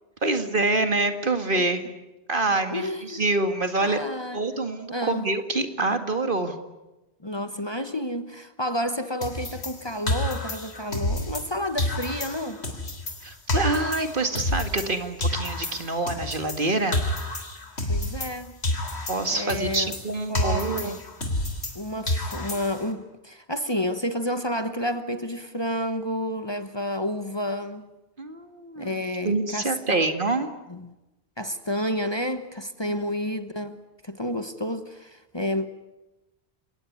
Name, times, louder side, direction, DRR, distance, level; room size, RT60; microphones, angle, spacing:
voice 1, 0.2-1.9 2.3-4.0 4.3-6.5 13.2-17.1 19.1-21.0 28.2-30.5 32.8-33.0, right 2 dB, 55° right, 2.2 m, -26 dB
voice 2, 2.5-3.3 3.8-4.5 4.9-5.3 7.2-12.6 17.9-18.6 19.3-19.9 20.3-21.0 21.7-27.9 28.8-30.0 30.7-30.9 31.4-35.7, left 1 dB, 25° left, 1.2 m, -30 dB
sound 1, 9.2-11.5 11.8-14.9 15.2-18.4 18.6-21.8 22.1-22.9, left 1 dB, 80° left, 3.6 m, -29 dB
29.0 x 18.5 x 9.6 m
omnidirectional pair, 1.1 m